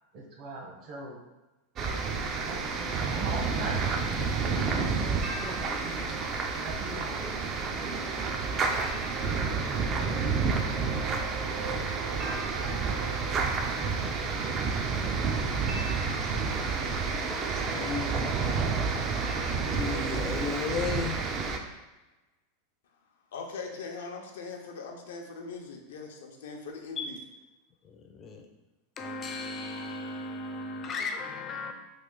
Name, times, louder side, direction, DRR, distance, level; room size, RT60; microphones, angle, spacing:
voice 1, 0.1-1.2 2.3-3.8 4.4-7.2, right 2 dB, 50° right, 0.8 m, -40 dB
sound 1, 1.8-21.6, right 4 dB, 35° right, 0.4 m, -30 dB
voice 2, 17.7-18.6 19.6-21.3 27.0-27.1 27.8-28.5 29.0-31.7, left 4 dB, 30° left, 0.4 m, -35 dB
voice 3, 23.3-27.2, left 4 dB, 85° left, 0.6 m, -40 dB
3.1 x 2.4 x 3.7 m
supercardioid pair, 130°, 0 cm